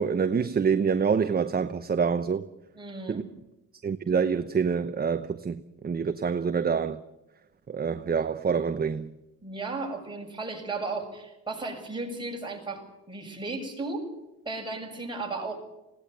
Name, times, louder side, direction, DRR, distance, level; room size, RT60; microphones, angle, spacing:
voice 1, 0.0-2.5 3.1-3.2 3.8-7.0 7.7-9.1, right 6 dB, 30° right, 0.9 m, -26 dB
voice 2, 2.7-3.2 9.4-14.1 14.5-15.6, right 3 dB, 15° right, 7.1 m, -35 dB
20.0 x 17.5 x 9.2 m
cardioid pair, 90°, 30 cm